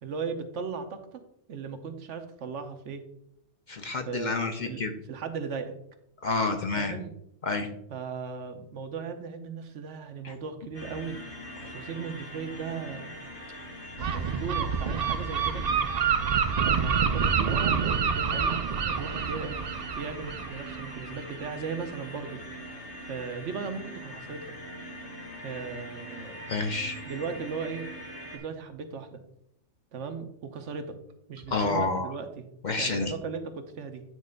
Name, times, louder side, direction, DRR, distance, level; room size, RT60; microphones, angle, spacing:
voice 1, 0.0-1.2 1.5-3.0 4.1-5.7 6.7-7.1 7.9-11.2 11.7-13.1 14.0-15.7 16.6-19.6 19.9-22.4 23.1-24.5 25.4-26.4 27.0-27.8 28.2-29.2 29.9-30.9 31.3-32.5 32.8-34.0, right 5 dB, 75° right, 7 dB, 1.2 m, -37 dB
voice 2, 3.7-4.9 6.2-7.0 7.4-7.7 10.2-10.3 11.6-11.7 26.5-27.0 31.5-32.1 32.6-33.1, left 3 dB, 50° left, 6 dB, 0.6 m, -29 dB
sound 1, 10.7-28.4, equal, 70° left, 2.0 m, -42 dB
Gull seagull, 14.0-21.5, right 6 dB, 55° right, 0.4 m, -27 dB
9.2 x 3.2 x 5.2 m, 0.77 s
omnidirectional pair, 1.2 m